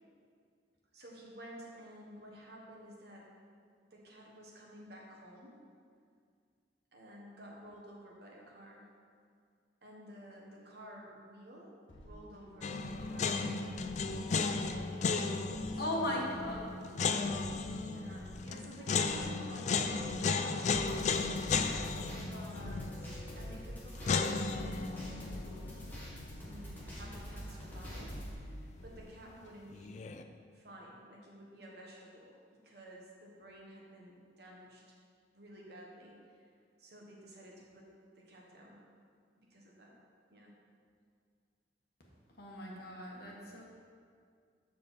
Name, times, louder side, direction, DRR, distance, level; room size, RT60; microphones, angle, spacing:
voice 1, 0.9-3.3 3.9-5.6 6.9-8.9 9.8-11.7 12.0-13.5 14.3-14.9 15.4-16.1 17.8-21.5 22.3-25.8 26.4-30.1 30.5-34.8 35.3-36.1 36.4-36.5 36.8-37.9 38.1-38.9 39.4-39.9 40.3-40.6, right 1 dB, 60° right, -3 dB, 1.4 m, -52 dB
sound 1, 11.9-29.6, equal, 85° left, 1.4 m, -53 dB
sound 2, 12.6-27.6 27.9-28.0 29.7-30.2, left 4 dB, 40° left, 0.3 m, -35 dB
voice 2, 15.8-16.6 42.4-43.6, left 1 dB, 55° left, -3 dB, 1.4 m, -37 dB
sound 3, 20.6-28.3, equal, 10° left, 1.5 m, -46 dB
7.3 x 6.6 x 4.2 m, 2.2 s
head